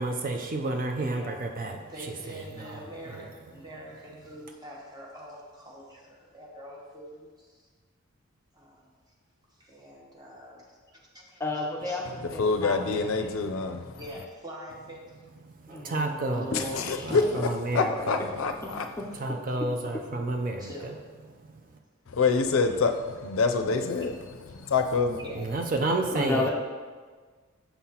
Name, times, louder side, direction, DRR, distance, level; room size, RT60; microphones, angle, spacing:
voice 1, 0.0-1.8 15.7-16.6 17.0-18.2 19.2-20.7 25.4-26.5, right 2 dB, 40° right, 3 dB, 0.5 m, -30 dB
voice 2, 1.1-1.6 1.9-7.7 8.5-8.9 9.5-12.0 14.0-15.2 17.0-17.2 18.6-18.8 20.6-21.1 22.6-22.9 24.5-24.6 25.2-25.6 26.1-26.3, equal, 20° right, -3 dB, 1.0 m, -45 dB
voice 3, 11.4-13.5 15.7-17.4 17.7-18.1 19.6-19.7 26.1-26.5, left 2 dB, 10° left, -1 dB, 0.5 m, -33 dB
voice 4, 12.3-14.0 16.5-17.5 17.7-18.8 22.1-24.1 24.5-25.2, left 4 dB, 65° left, 6 dB, 0.4 m, -26 dB
6.9 x 5.6 x 2.9 m, 1.5 s
head